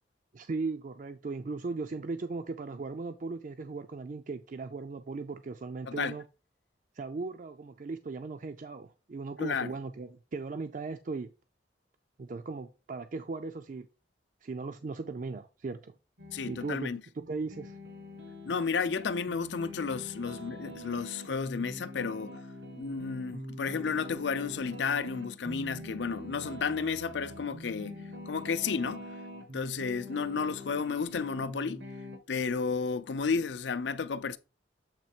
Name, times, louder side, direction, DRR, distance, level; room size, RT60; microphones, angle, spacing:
voice 1, 0.3-6.2 6.9-11.3 12.2-13.9 14.4-15.9 16.5-16.9 17.3-17.8, right 3 dB, 45° right, 0.4 m, -37 dB
voice 2, 9.4-9.7 16.3-17.0 18.5-22.4 22.8-29.1 29.5-31.8 32.3-34.4, left 5 dB, 75° left, 0.5 m, -32 dB
sound 1, 16.2-16.7 17.2-32.2, left 1 dB, 85° right, 1.3 m, -44 dB
7.5 x 3.1 x 4.3 m
head